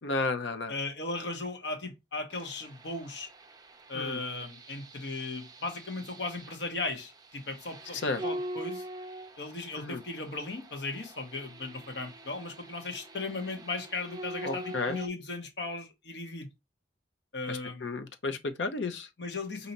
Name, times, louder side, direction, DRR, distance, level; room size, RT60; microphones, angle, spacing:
voice 1, 0.0-0.8 3.9-4.2 7.9-8.2 9.8-10.0 14.4-15.0 17.5-19.1, left 3 dB, 90° left, 0.7 m, -33 dB
voice 2, 0.7-3.3 3.9-8.9 9.4-16.5 17.3-17.9 19.2-19.7, left 3 dB, 70° left, 1.1 m, -37 dB
sound 1, 2.3-15.1, right 1 dB, 20° right, 0.5 m, -44 dB
5.2 x 2.7 x 2.8 m
head